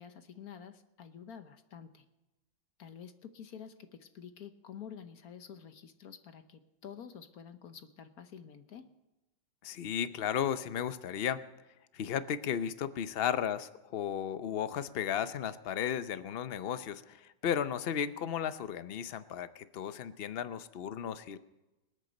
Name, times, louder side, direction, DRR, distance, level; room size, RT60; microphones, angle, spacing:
voice 1, 0.0-2.0 2.8-8.9, left 8 dB, 60° left, 9 dB, 1.3 m, -49 dB
voice 2, 9.6-11.4 11.9-21.4, left 9 dB, 80° left, 12 dB, 0.5 m, -34 dB
26.5 x 8.9 x 5.2 m, 1.0 s
omnidirectional pair, 2.0 m